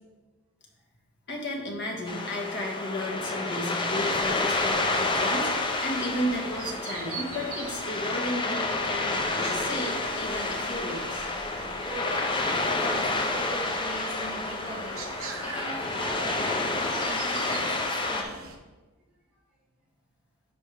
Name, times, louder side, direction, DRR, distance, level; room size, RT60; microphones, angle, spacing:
voice 1, 1.3-11.3, left 1 dB, 50° left, 0 dB, 1.4 m, -33 dB
sound 1, 2.1-18.2, left 2 dB, 20° left, 0.5 m, -29 dB
sound 2, 3.9-18.6, right 5 dB, 65° right, 0.9 m, -44 dB
voice 2, 11.4-15.0 15.3-18.4, right 1 dB, 5° right, -8 dB, 2.1 m, -40 dB
9.9 x 5.3 x 3.4 m, 1.3 s
head